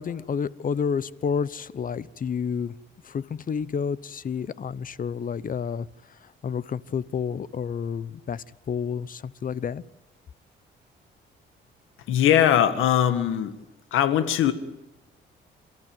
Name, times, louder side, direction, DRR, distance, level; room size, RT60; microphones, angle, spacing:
voice 1, 0.0-2.7 3.0-9.8, left 6 dB, 45° left, 19 dB, 0.9 m, -30 dB
voice 2, 12.1-13.6 13.9-14.5, left 10 dB, 85° left, 10 dB, 2.0 m, -20 dB
28.0 x 14.0 x 9.1 m, 0.96 s
cardioid pair, 90°, 20 cm